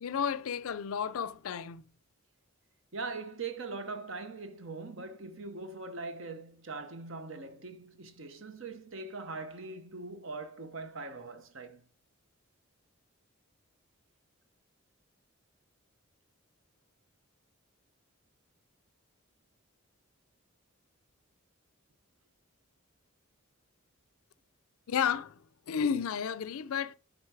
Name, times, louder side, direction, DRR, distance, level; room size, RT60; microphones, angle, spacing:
voice 1, 0.0-1.9 24.9-26.9, left 7 dB, 80° left, 0.4 m, -32 dB
voice 2, 2.9-11.9, right 3 dB, 60° right, 0.8 m, -41 dB
8.8 x 3.9 x 4.7 m
head